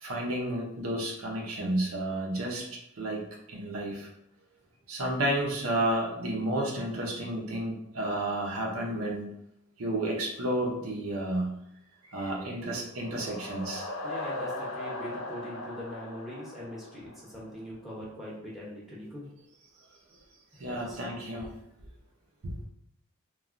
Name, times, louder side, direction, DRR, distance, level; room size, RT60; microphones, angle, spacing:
voice 1, 0.0-4.1 4.9-9.2 9.8-11.5 12.1-13.9 20.6-21.5 22.4-22.6, right 1 dB, 80° right, -1 dB, 0.7 m, -31 dB
sound 1, 12.6-17.5, left 2 dB, 65° left, 0.5 m, -39 dB
voice 2, 14.0-19.3 20.7-21.0, left 1 dB, ahead, -6 dB, 0.7 m, -41 dB
3.1 x 2.3 x 2.5 m, 0.76 s
head